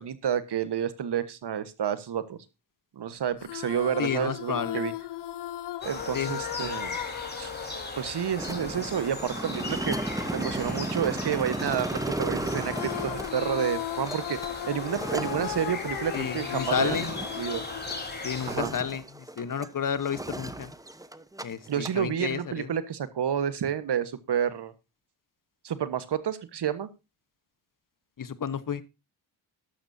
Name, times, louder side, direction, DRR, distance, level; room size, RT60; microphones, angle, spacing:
voice 1, 0.0-2.4 3.0-4.9 5.8-7.0 7.4-7.5 8.0-10.0 10.3-14.4 14.7-17.0 17.4-17.6 18.5-18.7 21.7-24.7 25.6-26.9, right 9 dB, 60° right, 13 dB, 1.4 m, -30 dB
sound 1, 3.4-8.9 12.4-18.8, left 14 dB, 60° left, 0.7 m, -37 dB
voice 2, 4.0-4.8 6.1-6.4 16.1-17.1 18.2-20.7 21.4-22.7 28.2-28.8, left 7 dB, 45° left, 15 dB, 1.2 m, -31 dB
sound 2, 5.8-18.6, left 2 dB, 20° left, 4.0 m, -38 dB
sound 3, 8.4-18.0 18.3-19.7 20.0-21.4 21.7-22.0, right 1 dB, 10° right, 1.0 m, -35 dB
13.0 x 11.5 x 2.7 m, 0.27 s
supercardioid pair, 55°, 46 cm